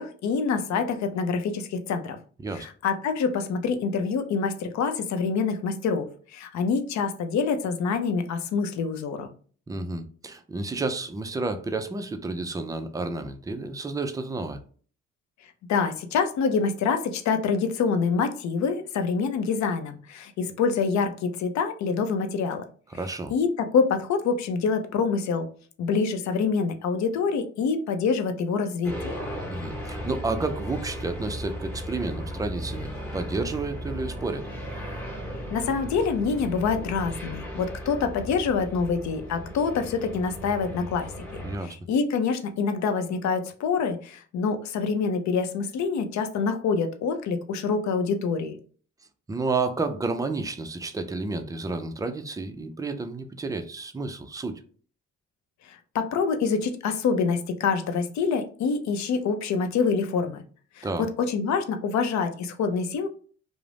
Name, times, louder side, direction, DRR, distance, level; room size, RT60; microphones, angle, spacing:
voice 1, 0.0-2.2 2.5-9.3 15.7-22.6 23.3-25.5 25.8-29.1 35.5-48.5 55.6-60.4 60.8-63.1, left 5 dB, 65° left, 8 dB, 0.5 m, -26 dB
voice 2, 9.7-14.6 22.9-23.3 29.4-34.5 41.4-41.8 49.3-54.6 60.8-61.1, right 3 dB, 10° right, 8 dB, 0.3 m, -31 dB
sound 1, 28.8-41.6, equal, 5° left, 0.9 m, -36 dB
2.5 x 2.0 x 3.2 m, 0.43 s
cardioid pair, 90°, 30 cm